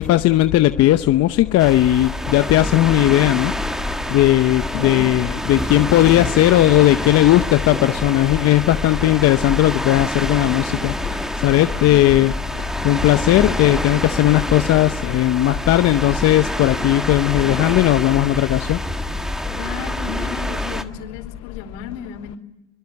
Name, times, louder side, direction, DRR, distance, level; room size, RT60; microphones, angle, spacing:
voice 1, 0.0-3.5 4.1-10.9 11.4-12.3 12.8-18.8, left 15 dB, 45° left, 10 dB, 0.9 m, -16 dB
sound 1, 1.6-20.8, equal, ahead, 1.5 m, -26 dB
voice 2, 4.7-5.1 19.5-22.4, left 8 dB, 65° left, 8 dB, 4.3 m, -33 dB
24.0 x 23.0 x 9.7 m, 1.0 s
supercardioid pair, 105°, 36 cm